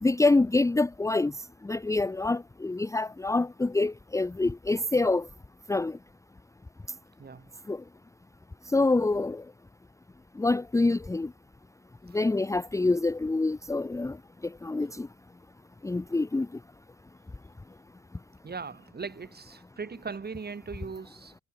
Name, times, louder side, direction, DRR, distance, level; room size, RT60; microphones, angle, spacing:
voice 1, 0.0-1.3 1.6-5.3 5.7-6.0 7.7-7.8 8.7-9.4 10.4-11.3 12.1-14.2 14.6-15.1 15.8-16.5, left 2 dB, 10° left, 0.7 m, -26 dB
voice 2, 7.2-7.6 12.1-12.2 18.4-21.3, right 5 dB, 30° right, 3.3 m, -39 dB
cardioid pair, 90°, 30 cm